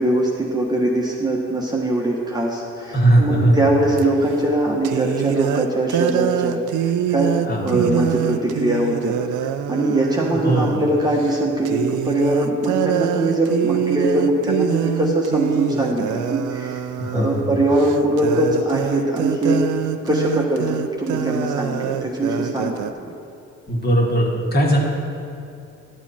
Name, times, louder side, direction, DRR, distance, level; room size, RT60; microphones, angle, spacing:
voice 1, 0.0-7.3 7.6-9.1 9.7-16.8 17.1-19.6 20.0-23.1, right 1 dB, 15° right, -3 dB, 1.2 m, -21 dB
voice 2, 2.9-3.6 7.5-7.8 10.4-10.8 17.0-17.5 23.7-24.8, right 1 dB, 30° left, -3 dB, 2.2 m, -18 dB
sound 1, 4.0-4.1 4.8-10.9 11.2-11.4 11.6-22.9, right 10 dB, 80° right, 0.5 m, -25 dB
12.0 x 7.3 x 4.3 m, 2.7 s
cardioid pair, 90°, 30 cm